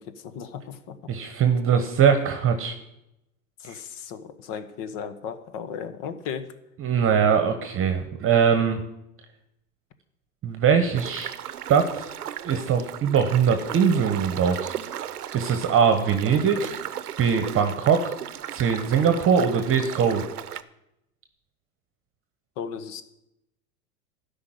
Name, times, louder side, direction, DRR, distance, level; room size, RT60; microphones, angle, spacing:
voice 1, 0.0-1.1 3.6-6.5 22.6-23.0, left 7 dB, 45° left, 11 dB, 1.4 m, -36 dB
voice 2, 1.1-2.8 3.7-3.8 6.8-8.8 10.4-11.3 11.7-12.1 12.4-14.7 15.3-16.8 17.2-18.1 18.5-20.2, right 7 dB, 30° right, 7 dB, 1.2 m, -21 dB
sound 1, 10.9-20.6, right 10 dB, 85° right, 0.8 m, -36 dB
13.0 x 5.4 x 9.2 m, 0.86 s
hypercardioid pair, 95°, 44 cm